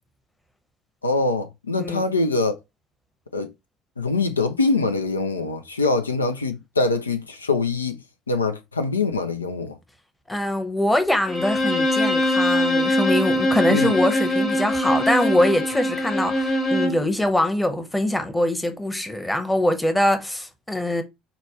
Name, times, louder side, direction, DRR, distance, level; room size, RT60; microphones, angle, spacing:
voice 1, 1.0-2.5 3.3-3.5 4.0-8.0 8.3-9.8 13.7-13.9, left 3 dB, 85° left, 0.3 m, -23 dB
voice 2, 1.8-2.1 10.3-21.0, left 1 dB, 10° left, 0.8 m, -23 dB
Bowed string instrument, 11.3-17.1, left 1 dB, 40° left, 1.3 m, -22 dB
5.1 x 2.2 x 2.7 m
figure-of-eight pair, 60°, 0 cm